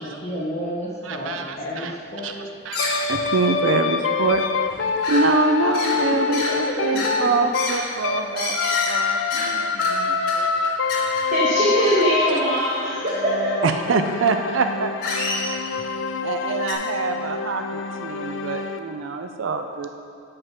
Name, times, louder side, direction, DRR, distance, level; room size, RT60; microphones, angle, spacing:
voice 1, 0.0-2.3 3.8-4.0 5.6-7.0 7.7-8.0 8.5-8.8, equal, 35° left, -5 dB, 1.8 m, -33 dB
voice 2, 1.0-1.9 2.2-2.3 2.6-2.8 3.1-10.5 13.6-14.9 16.2-19.9, right 4 dB, 80° right, 7 dB, 0.5 m, -25 dB
sound 1, 2.7-3.4 3.7-3.8 4.3-4.4 4.6-5.2 5.7-6.0 6.3-6.5 7.0-7.1 7.5-7.8 8.4-9.0 9.3-9.5 9.8-9.9 10.3-10.4 10.6-11.2 12.6-12.8 13.1-13.2 14.1-14.2 15.0-15.8 16.7-16.8, left 3 dB, 50° left, 2.3 m, -28 dB
sound 2, 2.8-8.3 8.5-18.8, left 5 dB, 70° left, 0.5 m, -26 dB
voice 3, 11.3-13.6, right 1 dB, 40° right, -7 dB, 1.3 m, -21 dB
6.6 x 5.9 x 7.4 m, 2.4 s
head